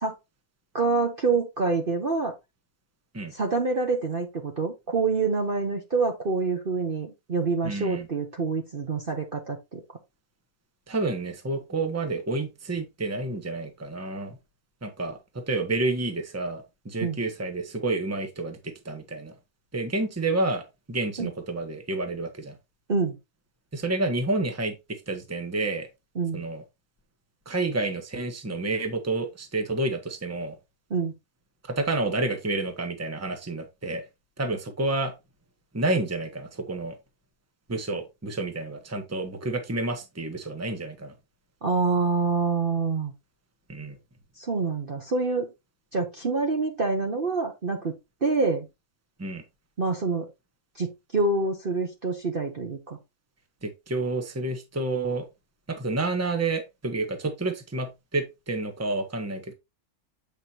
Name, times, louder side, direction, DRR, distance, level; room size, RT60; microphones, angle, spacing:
voice 1, 0.7-2.3 3.3-9.8 17.0-17.2 21.2-21.3 22.9-23.2 26.2-26.4 30.9-31.1 41.6-43.1 44.4-45.5 45.9-47.9 48.2-48.7 49.8-50.3 50.8-53.0, right 4 dB, 40° right, 1.1 m, -26 dB
voice 2, 7.6-8.1 10.9-14.4 14.8-19.3 19.7-22.6 23.7-25.9 26.3-26.6 27.5-30.6 31.7-34.0 34.4-35.1 35.7-37.0 37.7-41.1 43.7-44.0 49.2-49.4 53.6-55.3 55.7-59.5, right 2 dB, 10° right, 1.1 m, -29 dB
8.1 x 5.3 x 2.9 m
omnidirectional pair, 1.6 m